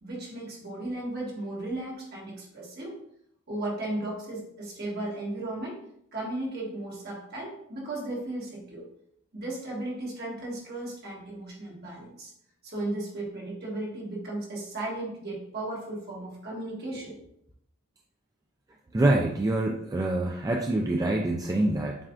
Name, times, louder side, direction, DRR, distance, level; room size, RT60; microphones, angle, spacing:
voice 1, 0.0-3.0 3.5-5.8 6.1-8.9 9.3-12.3 12.6-17.2, right 2 dB, 50° right, -3 dB, 1.4 m, -35 dB
voice 2, 18.9-22.0, right 1 dB, 15° right, 0 dB, 0.3 m, -25 dB
7.3 x 2.5 x 2.5 m, 0.70 s
head